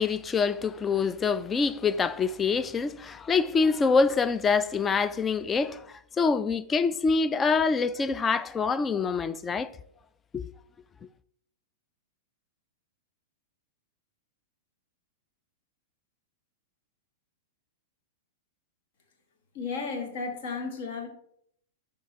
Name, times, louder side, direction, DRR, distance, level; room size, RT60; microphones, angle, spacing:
voice 1, 0.0-9.7 10.3-10.5, left 5 dB, 20° left, 0.3 m, -25 dB
voice 2, 19.5-21.1, left 4 dB, 50° left, 1.7 m, -33 dB
11.0 x 3.7 x 2.9 m
figure-of-eight pair, 100°, 0 cm